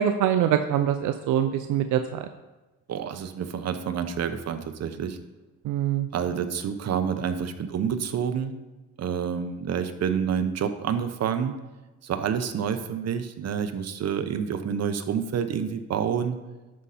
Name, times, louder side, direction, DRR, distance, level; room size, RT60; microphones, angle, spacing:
voice 1, 0.0-2.3 5.7-6.1, right 10 dB, 80° right, 8 dB, 0.5 m, -24 dB
voice 2, 2.9-5.2 6.1-8.6 9.0-11.5 12.0-16.4, right 7 dB, 55° right, 9 dB, 0.9 m, -28 dB
11.5 x 5.7 x 4.2 m, 1.1 s
cardioid pair, 90°, 30 cm